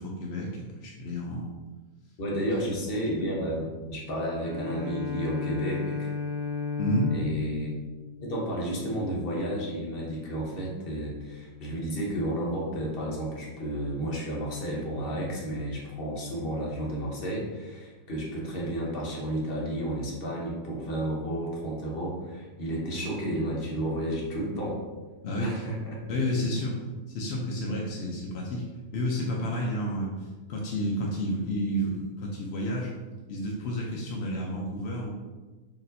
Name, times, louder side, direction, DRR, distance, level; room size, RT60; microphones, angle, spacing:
voice 1, 0.0-1.5 2.9-3.0 6.8-7.1 25.2-25.6 26.1-26.8 27.1-28.6 28.9-30.1 30.5-32.9 33.3-35.1, equal, 75° left, -2 dB, 0.6 m, -30 dB
voice 2, 2.2-6.1 7.1-7.7 8.2-24.8 25.4-26.0 26.5-26.6, right 1 dB, 45° left, -3 dB, 0.9 m, -32 dB
Bowed string instrument, 4.4-9.0, left 5 dB, 30° right, 1.0 m, -34 dB
4.1 x 3.0 x 2.6 m, 1.3 s
omnidirectional pair, 1.7 m